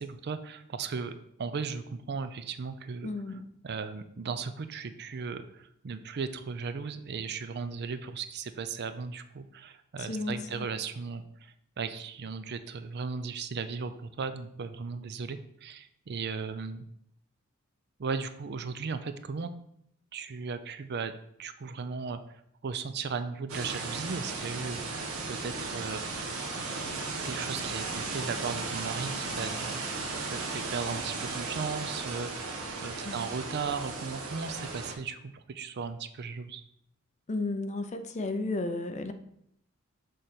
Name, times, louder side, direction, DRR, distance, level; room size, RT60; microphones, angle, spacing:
voice 1, 0.0-16.9 18.0-19.5 20.1-21.1 21.4-22.2 22.6-26.0 26.6-29.9 30.3-36.6, right 5 dB, 50° right, 11 dB, 0.5 m, -37 dB
voice 2, 3.0-3.4 10.1-10.7 33.0-33.2 37.3-39.1, left 2 dB, 35° left, 8 dB, 0.5 m, -33 dB
sound 1, 23.5-34.9, right 3 dB, 85° right, 1.2 m, -36 dB
6.7 x 3.3 x 5.7 m, 0.73 s
head